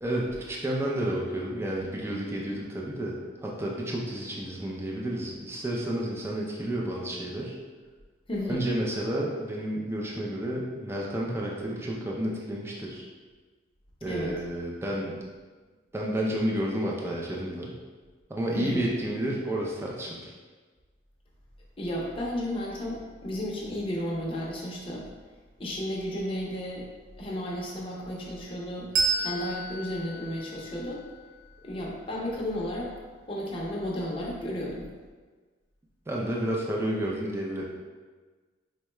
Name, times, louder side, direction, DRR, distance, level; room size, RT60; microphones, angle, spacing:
voice 1, 0.0-7.6 8.5-13.1 14.0-15.1 15.9-17.7 18.3-20.3 36.1-37.8, right 1 dB, 15° right, -3 dB, 0.4 m, -31 dB
voice 2, 8.3-8.6 14.1-14.3 18.5-18.9 21.8-25.1 25.6-26.9 27.2-31.0 31.6-34.9, equal, 30° left, -4 dB, 0.6 m, -33 dB
Bell, 28.9-32.0, right 4 dB, 80° right, 0.5 m, -32 dB
4.5 x 2.2 x 3.0 m, 1.4 s
head